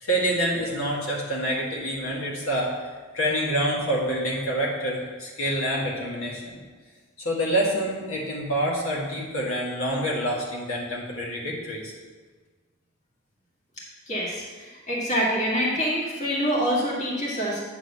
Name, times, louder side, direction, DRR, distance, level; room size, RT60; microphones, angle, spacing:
voice 1, 0.0-2.7 3.1-6.6 7.2-11.9, right 1 dB, 75° left, -3 dB, 1.8 m, -27 dB
voice 2, 14.1-17.6, equal, 35° left, -5 dB, 1.8 m, -26 dB
8.9 x 4.0 x 6.6 m, 1.4 s
head